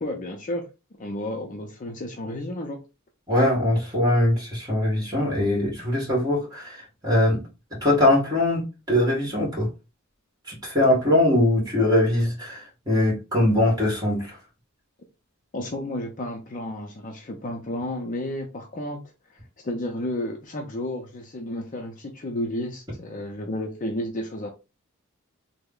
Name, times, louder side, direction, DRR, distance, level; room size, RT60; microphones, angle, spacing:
voice 1, 0.0-0.7 1.0-2.8 15.5-19.0 19.3-24.5, left 1 dB, 35° left, 0.5 m, -32 dB
voice 2, 3.3-7.4 7.8-9.7 10.5-14.4, left 1 dB, 15° right, 1.6 m, -22 dB
3.3 x 2.1 x 3.6 m
head